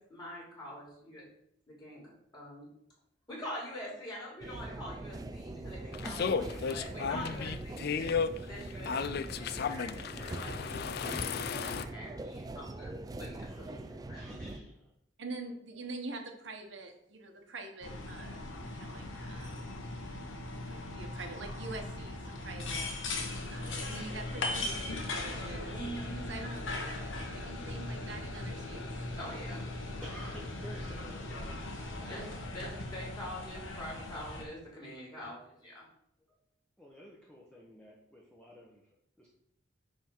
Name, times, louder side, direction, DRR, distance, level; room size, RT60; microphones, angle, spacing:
voice 1, 0.1-1.2 1.7-2.7 3.3-8.1 8.4-12.9 13.2-14.2 25.6-26.3 29.2-29.7 32.1-35.8, equal, 20° left, -6 dB, 3.3 m, -45 dB
sound 1, 4.4-14.6, right 2 dB, 20° right, 0.3 m, -42 dB
sound 2, 5.9-11.9, left 6 dB, 55° left, 0.4 m, -34 dB
voice 2, 13.4-14.9 30.0-31.7 32.0-32.5 36.3-36.4 36.8-39.3, equal, 5° left, -3 dB, 1.0 m, -52 dB
voice 3, 15.2-19.7 20.6-22.9 23.5-25.8 26.3-26.6 27.4-28.8 32.0-32.2, right 3 dB, 65° right, 3 dB, 1.1 m, -45 dB
sound 3, 17.8-34.4, left 2 dB, 80° left, 1.3 m, -39 dB
9.7 x 3.6 x 4.5 m, 0.73 s
head